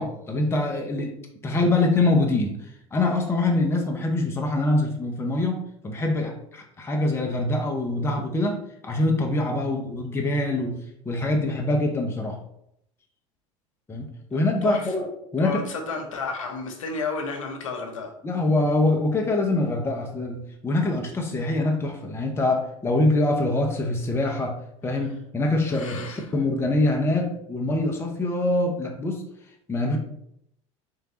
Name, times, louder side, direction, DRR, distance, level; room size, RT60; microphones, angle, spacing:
voice 1, 0.0-10.8 11.0-12.4 13.9-15.6 18.2-24.6 24.8-29.2 29.7-30.0, left 2 dB, 15° left, 1 dB, 0.7 m, -24 dB
voice 2, 15.4-18.1 25.7-26.2, left 4 dB, 85° left, 3 dB, 0.8 m, -32 dB
3.7 x 3.2 x 2.9 m, 0.74 s
hypercardioid pair, 80°, 17 cm